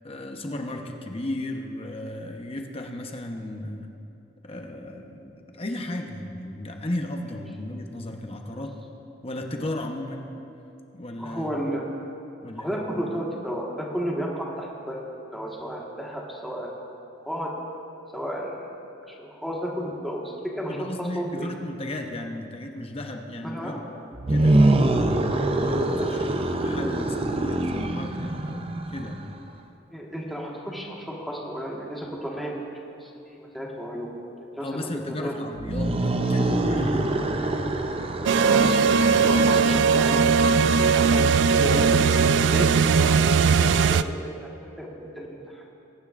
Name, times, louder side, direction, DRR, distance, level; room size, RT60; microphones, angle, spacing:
voice 1, 0.0-3.9 4.4-8.8 9.2-10.3 10.9-11.6 12.4-12.8 20.7-23.9 24.3-25.2 25.6-29.4 34.6-35.9 36.3-37.1, left 1 dB, 35° left, 3 dB, 0.9 m, -34 dB
voice 2, 11.2-11.8 12.6-15.0 15.3-16.8 17.2-17.5 18.1-18.7 19.2-21.5 23.4-23.8 29.9-32.6 33.0-34.2 34.6-35.4 38.5-40.4 40.9-41.3 41.6-45.4, equal, ahead, -3 dB, 1.6 m, -33 dB
sound 1, 24.1-29.3 35.6-41.2, right 2 dB, 30° right, 0.6 m, -25 dB
sound 2, 38.3-44.0, right 5 dB, 70° right, 0.3 m, -19 dB
21.5 x 10.0 x 2.5 m, 2.8 s
head